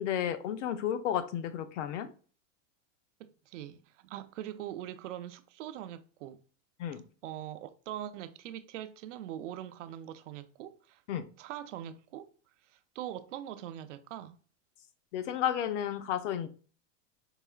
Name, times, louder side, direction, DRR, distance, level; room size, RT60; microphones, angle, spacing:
voice 1, 0.0-2.1 6.8-7.0 11.1-11.3 15.1-16.5, left 10 dB, 70° left, 0.6 m, -32 dB
voice 2, 3.2-6.4 7.2-11.0 11.4-12.3 12.7-14.4, right 11 dB, 70° right, 0.5 m, -42 dB
4.8 x 2.8 x 2.3 m
supercardioid pair, 165°, 38 cm